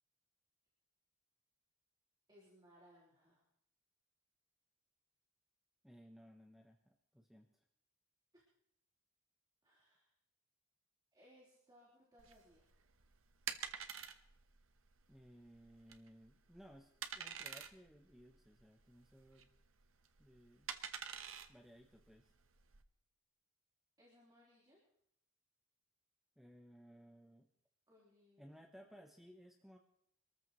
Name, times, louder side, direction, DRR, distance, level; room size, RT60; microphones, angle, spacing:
voice 1, 2.3-3.5 8.3-8.4 9.6-10.1 11.1-12.7 24.0-24.8 27.9-28.4, equal, 20° right, -6 dB, 3.7 m, -66 dB
voice 2, 5.8-7.6 15.1-19.5 20.2-20.7 21.5-22.3 26.4-27.5 28.4-29.8, equal, ahead, 2 dB, 0.8 m, -60 dB
sound 1, 12.2-22.8, right 8 dB, 70° right, 1.0 m, -48 dB
25.5 x 14.0 x 3.1 m, 0.71 s
head